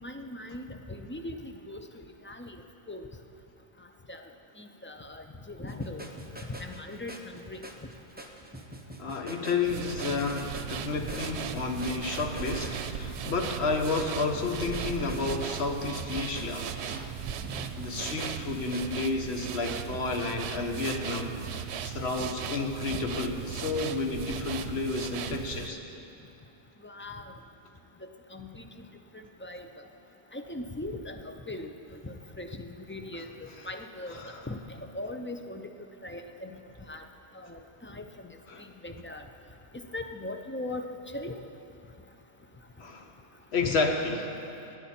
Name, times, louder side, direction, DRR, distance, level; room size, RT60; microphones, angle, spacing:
voice 1, 0.0-1.8 2.2-2.6 2.9-3.1 4.1-4.2 4.6-6.1 6.6-7.6 22.9-23.0 26.8-27.3 28.0-28.6 29.1-29.7 30.3-31.7 32.0-34.2 34.5-35.7 36.0-36.5 36.9-37.0 37.3-38.1 38.6-39.2 39.9-41.4 43.6-43.8, left 2 dB, 15° left, 5 dB, 0.4 m, -39 dB
sound 1, 5.7-18.8, right 1 dB, 10° right, 0.7 m, -45 dB
voice 2, 9.0-16.7 17.8-25.8 34.1-34.4 38.5-38.6 42.8-43.1 43.5-44.3, left 3 dB, 75° left, 3 dB, 1.4 m, -31 dB
sound 2, 9.6-25.7, right 8 dB, 90° right, 0.9 m, -37 dB
17.0 x 9.5 x 4.4 m, 2.9 s
omnidirectional pair, 1.1 m